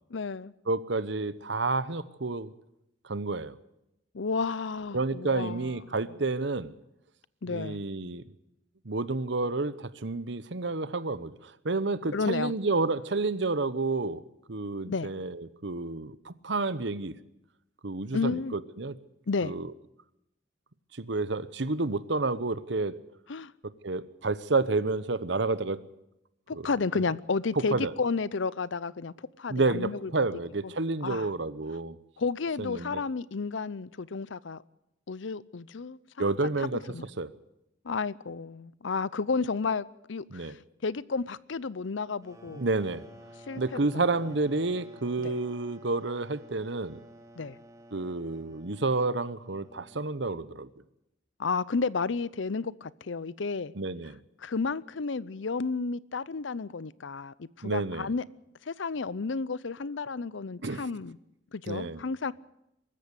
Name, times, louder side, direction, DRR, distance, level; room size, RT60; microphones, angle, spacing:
voice 1, 0.1-0.5 4.1-5.8 7.4-7.8 12.1-12.5 14.9-15.1 18.1-18.6 19.3-19.5 23.3-23.5 26.5-30.3 30.6-30.7 31.0-31.3 32.2-34.6 35.1-36.3 36.9-37.1 37.8-42.7 43.5-44.0 45.2-45.3 47.4-47.6 51.4-53.7 54.4-58.2 58.6-61.2 61.5-62.3, left 4 dB, 80° left, 0.6 m, -32 dB
voice 2, 0.7-2.5 3.0-3.5 4.9-6.7 7.5-8.2 8.8-14.2 14.5-17.1 17.8-19.0 19.4-19.7 20.9-23.0 23.8-25.8 27.0-27.1 27.7-27.9 29.5-32.0 32.6-33.0 36.2-36.8 37.2-37.3 40.3-40.6 42.5-43.0 43.6-47.0 47.9-50.7 53.8-54.2 57.6-58.1 60.6-60.8 61.7-62.0, right 3 dB, 65° right, 1.0 m, -30 dB
sound 1, 42.2-50.7, equal, 15° right, 2.2 m, -52 dB
23.5 x 14.0 x 8.3 m
head